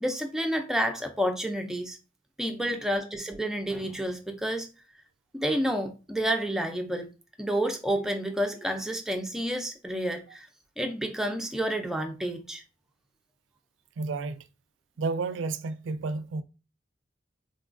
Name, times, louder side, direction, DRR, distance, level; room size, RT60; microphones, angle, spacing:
voice 1, 0.0-2.0 2.4-4.7 5.3-7.1 7.4-10.4 10.8-12.6, equal, 5° right, 0.4 m, -29 dB
voice 2, 2.5-2.9 10.3-10.4 14.0-14.5 15.0-16.4, right 3 dB, 85° right, 0.3 m, -32 dB
3.7 x 2.2 x 2.5 m
head